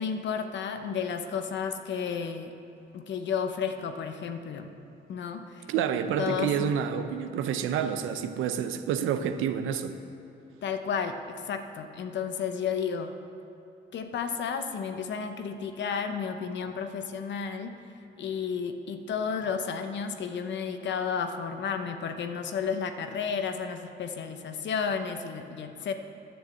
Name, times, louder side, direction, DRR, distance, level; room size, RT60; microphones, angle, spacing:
voice 1, 0.0-2.5 2.9-4.7 5.1-5.7 6.2-6.7 10.6-13.1 13.9-17.8 18.2-25.9, left 6 dB, 65° left, 7 dB, 0.9 m, -32 dB
voice 2, 5.7-10.0, right 8 dB, 90° right, 9 dB, 0.7 m, -28 dB
10.0 x 6.4 x 7.8 m, 2.9 s
cardioid pair, 90°, 20 cm